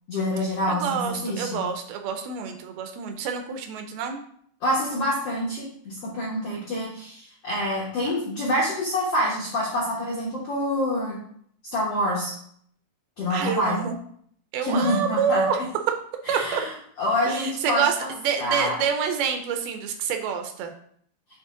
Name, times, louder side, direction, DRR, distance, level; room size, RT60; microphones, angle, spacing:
voice 1, 0.1-1.6 4.6-11.2 11.7-12.3 13.2-13.8 14.6-15.4 16.3-16.7 17.0-18.1 18.4-18.8, left 1 dB, 90° left, -4 dB, 1.3 m, -26 dB
voice 2, 0.7-4.2 13.3-14.0 14.5-15.6 16.3-16.6 17.3-20.7, right 7 dB, 80° right, 5 dB, 2.3 m, -27 dB
9.0 x 3.1 x 3.8 m, 0.65 s
omnidirectional pair, 4.6 m